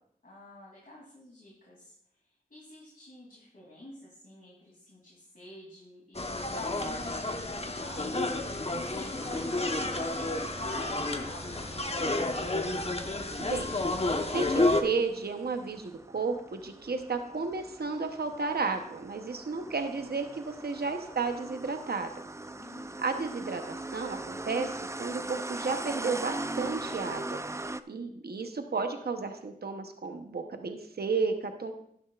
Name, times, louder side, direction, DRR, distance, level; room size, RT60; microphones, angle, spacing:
voice 1, 0.2-1.9 2.5-12.4 22.4-23.0, left 2 dB, 65° left, -5 dB, 2.7 m, -49 dB
sound 1, 6.1-14.8, left 2 dB, 40° left, 1.0 m, -30 dB
sound 2, 9.2-27.8, right 2 dB, 20° right, 0.4 m, -41 dB
voice 2, 13.4-13.7 14.3-22.1 23.0-27.4 27.9-31.7, right 4 dB, 80° right, 6 dB, 0.8 m, -33 dB
12.5 x 9.8 x 2.4 m, 0.69 s
wide cardioid pair, 40°, 16 cm